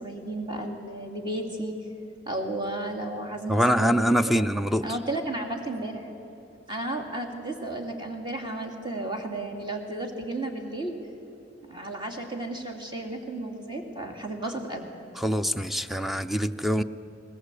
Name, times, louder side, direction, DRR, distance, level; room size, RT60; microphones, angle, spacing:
voice 1, 0.0-1.8 2.3-4.5 4.8-6.1 6.7-11.0 11.7-14.9, right 1 dB, 25° right, 3 dB, 2.6 m, -33 dB
voice 2, 3.5-4.9 15.2-16.8, equal, ahead, 10 dB, 0.5 m, -24 dB
20.5 x 20.0 x 8.3 m, 3.0 s
head